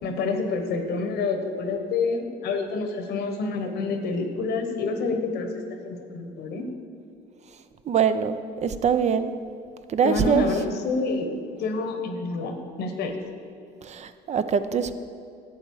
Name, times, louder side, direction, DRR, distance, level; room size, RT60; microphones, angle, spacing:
voice 1, 0.0-5.5 5.8-6.6 10.0-11.3 11.6-13.1, left 3 dB, 75° left, 6 dB, 1.2 m, -28 dB
voice 2, 7.9-9.3 9.9-10.5 13.8-15.0, right 7 dB, 40° right, 11 dB, 0.5 m, -23 dB
11.5 x 7.7 x 4.8 m, 2.5 s
cardioid pair, 110°, 17 cm